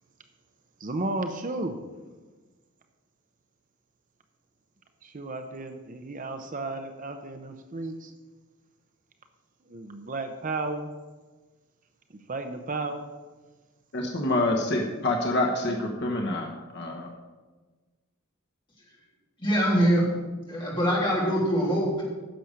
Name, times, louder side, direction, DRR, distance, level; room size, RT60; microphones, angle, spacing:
voice 1, 0.8-1.8 5.0-8.1 9.7-10.9 12.1-13.1, right 2 dB, 40° right, 7 dB, 0.7 m, -33 dB
voice 2, 13.9-17.1, left 2 dB, 50° left, 1 dB, 1.2 m, -27 dB
voice 3, 19.4-20.0 20.5-22.0, equal, 20° left, -6 dB, 3.3 m, -23 dB
10.0 x 7.0 x 6.4 m, 1.3 s
head